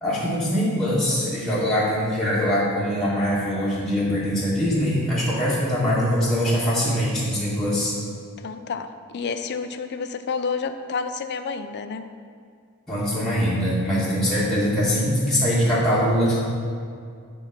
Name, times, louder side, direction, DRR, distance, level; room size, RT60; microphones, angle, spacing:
voice 1, 0.0-7.9 12.9-16.4, equal, ahead, -9 dB, 1.4 m, -22 dB
voice 2, 8.4-12.0, left 5 dB, 50° left, 9 dB, 0.4 m, -30 dB
10.0 x 3.6 x 5.8 m, 2.2 s
head